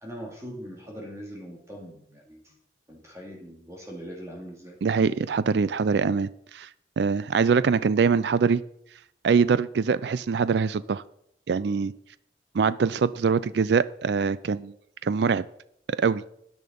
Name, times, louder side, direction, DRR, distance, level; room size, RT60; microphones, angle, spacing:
voice 1, 0.0-2.5 2.9-4.8, equal, 15° right, -1 dB, 2.3 m, -41 dB
voice 2, 4.8-6.7 7.0-8.6 9.2-11.0 11.5-11.9 12.5-14.7 15.0-15.4 15.9-16.2, right 5 dB, 70° right, 18 dB, 0.4 m, -23 dB
10.5 x 10.0 x 5.3 m, 0.72 s
head